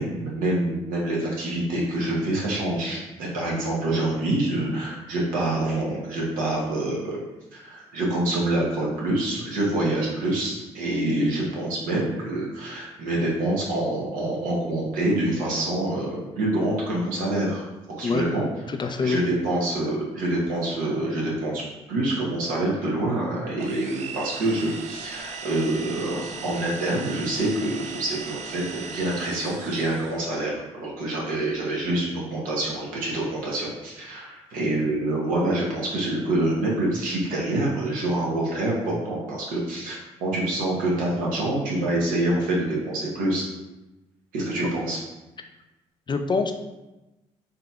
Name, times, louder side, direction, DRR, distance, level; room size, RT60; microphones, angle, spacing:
voice 1, 0.0-7.2 7.5-17.7 18.0-18.4 18.8-21.6 21.9-43.5 44.3-45.0, right 1 dB, 75° right, -4 dB, 0.9 m, -26 dB
voice 2, 18.7-19.2 46.1-46.5, left 4 dB, 35° left, 6 dB, 0.4 m, -25 dB
sound 1, 23.6-30.3, right 5 dB, 55° right, 0.4 m, -38 dB
3.9 x 2.7 x 2.3 m, 1.0 s
hypercardioid pair, 50°, 14 cm